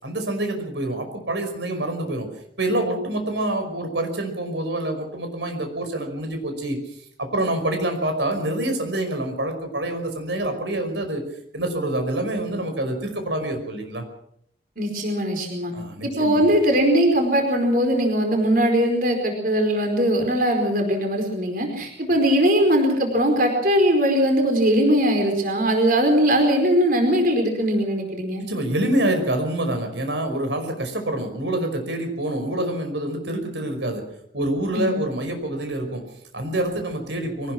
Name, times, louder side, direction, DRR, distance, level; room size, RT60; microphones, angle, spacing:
voice 1, 0.0-11.2 11.5-14.0 15.7-16.5 28.4-34.1 34.3-37.5, right 1 dB, 75° right, 6 dB, 5.4 m, -26 dB
voice 2, 14.8-15.7 16.0-28.5 34.7-35.0, equal, 45° right, 3 dB, 4.8 m, -20 dB
24.0 x 19.5 x 6.1 m, 0.68 s
head